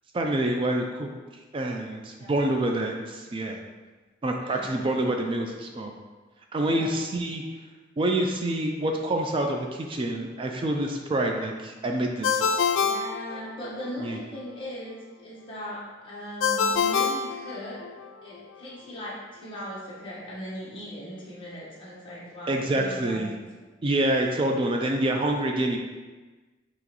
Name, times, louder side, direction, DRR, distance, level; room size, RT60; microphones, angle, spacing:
voice 1, 0.1-1.1 1.5-3.6 4.2-5.9 6.5-7.4 8.0-12.6 14.0-14.2 22.5-23.3 23.8-25.8, right 1 dB, 25° right, 2 dB, 0.3 m, -27 dB
voice 2, 2.2-2.5 4.4-4.8 6.6-7.0 12.8-17.8 18.2-23.3, equal, 25° left, -7 dB, 1.2 m, -39 dB
Ringtone, 12.2-13.9 16.4-18.1, left 6 dB, 80° left, 0.3 m, -26 dB
5.9 x 3.0 x 2.9 m, 1.3 s
head